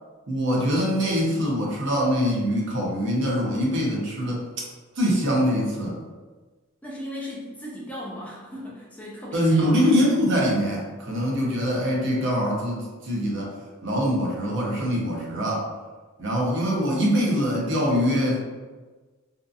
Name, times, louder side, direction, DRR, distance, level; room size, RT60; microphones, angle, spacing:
voice 1, 0.3-4.4 5.0-6.0 9.3-13.5 13.8-15.7 16.2-18.4, equal, 55° right, -3 dB, 0.6 m, -23 dB
voice 2, 6.8-9.6, left 1 dB, 5° left, -6 dB, 0.4 m, -37 dB
2.6 x 2.4 x 2.4 m, 1.3 s
head